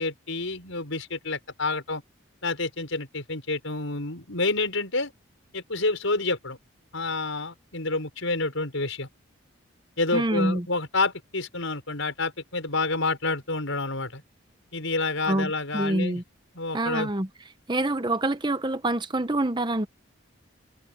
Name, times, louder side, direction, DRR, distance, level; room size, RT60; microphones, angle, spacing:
voice 1, 0.0-2.0 2.4-5.1 5.5-6.6 6.9-9.1 10.0-14.2 14.7-16.2 16.6-17.1, left 3 dB, 75° left, 5.5 m, -28 dB
voice 2, 10.1-10.7 15.3-16.2 16.7-17.3 17.7-19.9, right 1 dB, 20° right, 0.8 m, -26 dB
head